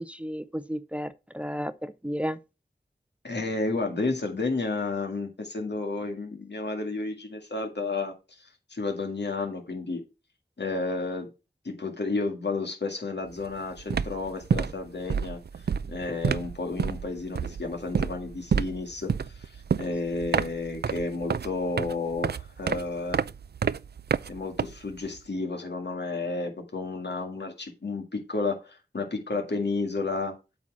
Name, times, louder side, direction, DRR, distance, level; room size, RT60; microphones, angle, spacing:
voice 1, 0.0-2.4, equal, 5° right, 0.6 m, -33 dB
voice 2, 3.2-10.0 10.6-11.3 11.6-15.4 15.9-23.2 24.3-30.4, left 3 dB, 75° left, 2.0 m, -31 dB
sound 1, 13.3-13.5 13.8-25.2, right 6 dB, 70° right, 0.4 m, -29 dB
8.4 x 4.4 x 6.2 m
wide cardioid pair, 40°, 18 cm